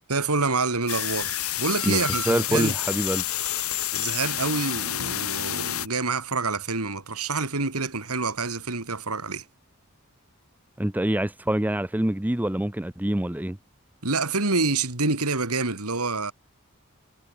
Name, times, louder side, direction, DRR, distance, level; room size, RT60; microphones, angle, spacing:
voice 1, 0.1-2.7 3.9-9.4 14.0-16.3, right 3 dB, 85° right, 3.1 m, -27 dB
sound 1, 0.9-5.9, left 12 dB, 75° left, 5.9 m, -29 dB
voice 2, 1.8-3.2 10.8-13.6, right 1 dB, 10° right, 0.6 m, -26 dB
head